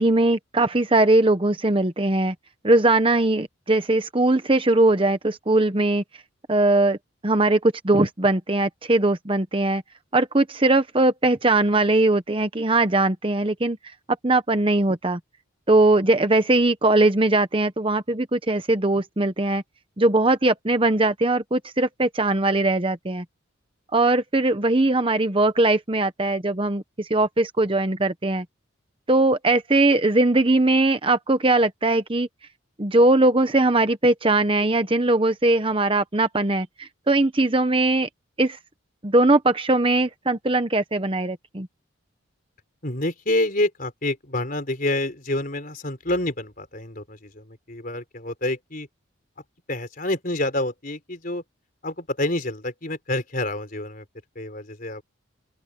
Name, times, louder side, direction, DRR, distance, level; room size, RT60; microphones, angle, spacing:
voice 1, 0.0-2.3 2.6-6.0 6.5-7.0 7.2-9.8 10.1-13.8 14.2-15.2 15.7-19.6 20.0-23.2 23.9-28.4 29.1-32.3 32.8-38.1 38.4-38.6 39.0-41.7, right 2 dB, 25° right, 0.9 m, -20 dB
voice 2, 42.8-48.9 49.7-51.4 51.8-54.1 54.3-55.0, left 1 dB, 40° left, 4.2 m, -27 dB
open air
head